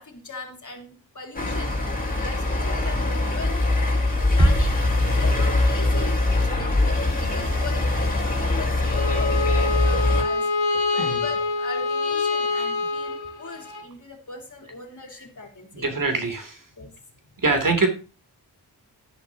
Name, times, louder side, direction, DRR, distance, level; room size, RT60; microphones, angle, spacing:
voice 1, 0.0-3.8 4.3-4.8 5.1-10.5 10.9-15.9 16.8-16.9, left 3 dB, 45° left, 3 dB, 3.4 m, -39 dB
sound 1, 1.4-10.2, left 2 dB, 20° left, 4.9 m, -22 dB
Bass drum, 4.4-5.8, right 1 dB, 25° right, 1.8 m, -24 dB
Bowed string instrument, 8.9-13.8, left 3 dB, 70° left, 2.3 m, -26 dB
voice 2, 15.7-16.6 17.4-17.9, right 3 dB, 50° right, 6 dB, 3.0 m, -23 dB
11.0 x 11.0 x 2.9 m, 0.34 s
wide cardioid pair, 70°, 42 cm